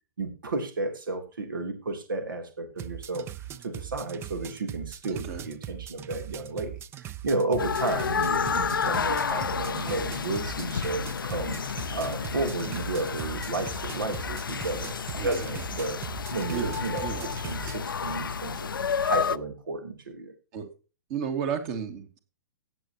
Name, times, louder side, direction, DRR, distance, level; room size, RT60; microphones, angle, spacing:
voice 1, 0.2-3.3 3.6-15.0 15.2-16.0 16.3-18.7 19.0-20.3, right 3 dB, 75° right, 5 dB, 3.3 m, -32 dB
sound 1, 2.8-17.8, right 11 dB, 20° right, 0.8 m, -40 dB
voice 2, 5.1-5.4 15.2-15.5 16.5-17.4 20.5-20.7 21.1-22.2, right 7 dB, 40° right, 6 dB, 2.5 m, -33 dB
sound 2, 7.6-19.4, left 6 dB, 80° left, 0.6 m, -31 dB
17.5 x 7.8 x 3.0 m, 0.32 s
hypercardioid pair, 120°, 11 cm